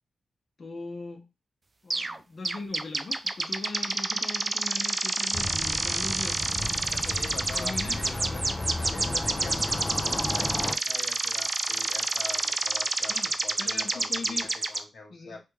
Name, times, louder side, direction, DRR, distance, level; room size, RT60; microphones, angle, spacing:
voice 1, 0.6-1.3 1.8-6.6 7.6-8.0 13.1-13.3 13.6-14.5 15.1-15.4, left 3 dB, 55° left, 0.8 m, -39 dB
sound 1, 1.9-2.2 2.4-14.8, right 2 dB, 35° right, 0.3 m, -29 dB
sound 2, 5.3-10.8, left 2 dB, 30° left, 0.4 m, -33 dB
voice 2, 6.9-15.4, left 3 dB, 75° left, 1.1 m, -44 dB
3.3 x 2.3 x 3.1 m
cardioid pair, 65°, 0 cm